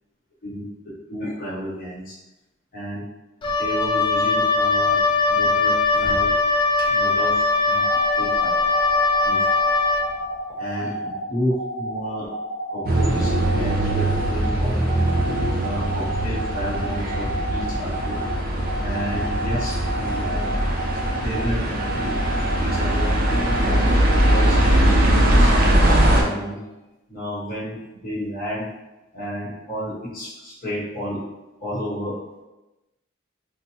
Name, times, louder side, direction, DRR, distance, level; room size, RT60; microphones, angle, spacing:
voice 1, 1.1-2.1 2.7-3.0 3.5-5.0 5.3-6.3 6.8-7.8 8.2-8.7 9.2-9.4 10.6-12.3 12.7-14.7 15.5-18.2 18.8-20.5 21.2-21.6 21.9-22.2 22.6-23.1 23.6-26.6 27.1-28.7 29.1-31.2 31.6-32.1, equal, 45° left, -7 dB, 1.0 m, -31 dB
Wind instrument woodwind instrument, 3.4-10.1, left 3 dB, 25° left, 0.3 m, -20 dB
sound 1, 7.6-24.7, right 1 dB, 5° right, 1.2 m, -32 dB
sound 2, 12.9-26.2, right 1 dB, 45° right, 0.5 m, -21 dB
3.2 x 2.1 x 2.8 m, 1.0 s
head